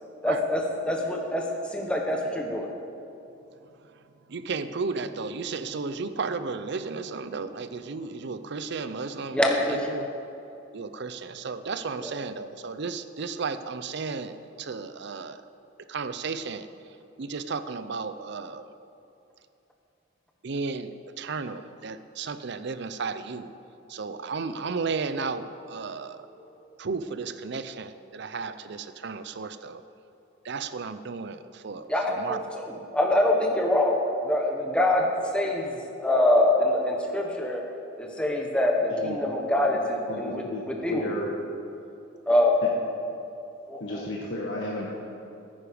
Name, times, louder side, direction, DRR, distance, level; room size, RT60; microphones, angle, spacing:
voice 1, 0.2-1.4 1.7-2.7 9.3-9.9 12.0-12.1 31.9-35.1 35.3-35.7 36.0-37.6 38.0-41.0 42.3-42.6 43.7-44.0, left 1 dB, 5° left, 0 dB, 1.0 m, -25 dB
voice 2, 4.3-9.4 9.7-10.1 10.7-15.4 15.9-16.7 17.2-18.7 20.4-23.5 23.9-26.2 26.8-29.8 30.4-31.9 32.2-32.4 32.7-32.9, right 4 dB, 60° right, 12 dB, 0.6 m, -34 dB
voice 3, 40.1-40.6 40.9-41.3 43.8-44.9, left 1 dB, 65° left, -3 dB, 1.3 m, -33 dB
14.5 x 9.8 x 5.1 m, 2.7 s
head